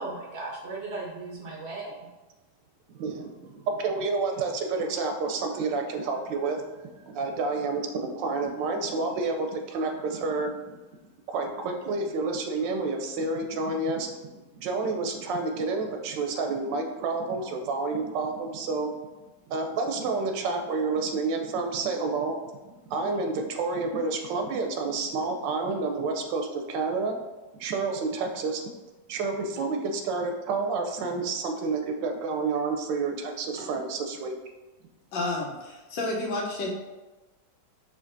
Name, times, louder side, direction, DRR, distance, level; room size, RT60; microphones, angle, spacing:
voice 1, 0.0-2.1 33.5-33.7, right 3 dB, 65° right, -2 dB, 0.6 m, -37 dB
voice 2, 2.9-6.6 7.1-10.8 11.3-18.9 19.5-22.4 22.9-27.2 27.6-28.6 29.1-34.3, right 3 dB, 85° right, 4 dB, 1.3 m, -29 dB
voice 3, 35.1-36.7, left 2 dB, 85° left, -3 dB, 1.5 m, -30 dB
5.0 x 3.4 x 2.5 m, 1.1 s
omnidirectional pair, 1.9 m